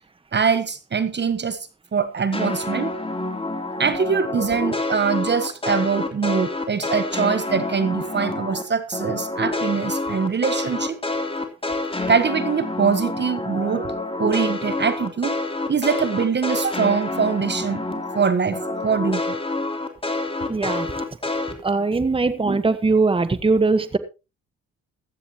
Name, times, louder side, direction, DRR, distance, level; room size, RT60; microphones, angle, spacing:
voice 1, 0.3-1.6 1.9-2.9 3.8-11.0 12.1-13.9 14.2-15.4 15.7-17.8 18.1-18.6 18.8-19.2 22.3-22.6, right 6 dB, 35° right, 12 dB, 1.3 m, -23 dB
sound 1, 2.3-8.6 8.9-18.2 18.5-21.5, left 2 dB, 20° left, 3.3 m, -27 dB
voice 2, 20.5-20.9 21.6-24.0, right 3 dB, 20° right, 12 dB, 1.3 m, -20 dB
15.5 x 14.0 x 3.0 m, 0.29 s
cardioid pair, 90°, 30 cm